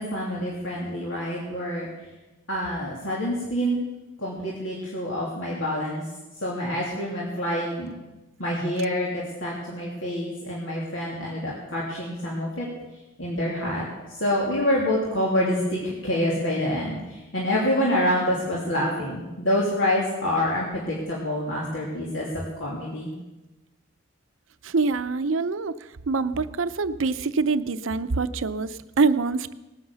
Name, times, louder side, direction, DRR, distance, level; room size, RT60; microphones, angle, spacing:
voice 1, 0.0-1.9 2.5-3.8 4.2-6.0 6.4-7.9 8.4-12.7 13.2-13.9 14.2-23.2, left 1 dB, 75° left, -4 dB, 2.9 m, -27 dB
voice 2, 24.6-29.5, right 4 dB, 80° right, 13 dB, 0.7 m, -25 dB
18.0 x 9.8 x 6.9 m, 1.1 s
head